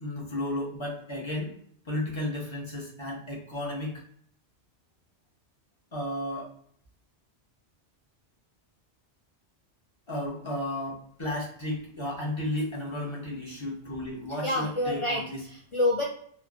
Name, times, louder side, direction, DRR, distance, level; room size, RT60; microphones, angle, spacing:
voice 1, 0.0-1.6 1.8-3.9 5.9-6.5 10.1-15.4, left 1 dB, 30° left, -3 dB, 0.7 m, -33 dB
voice 2, 14.4-16.0, left 1 dB, 55° left, -4 dB, 0.3 m, -28 dB
3.1 x 2.0 x 2.4 m, 0.62 s
omnidirectional pair, 1.1 m